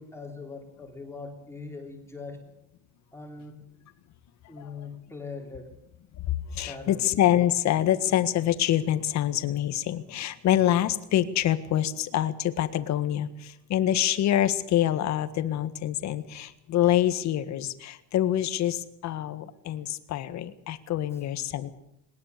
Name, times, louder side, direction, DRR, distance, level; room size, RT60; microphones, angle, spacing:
voice 1, 0.0-2.5 3.1-3.6 4.5-5.8 6.7-7.1 21.1-21.2, left 4 dB, 5° left, 2 dB, 3.4 m, -41 dB
voice 2, 6.5-21.7, left 12 dB, 40° left, 12 dB, 1.7 m, -26 dB
20.5 x 19.5 x 6.8 m, 0.79 s
supercardioid pair, 125°, 41 cm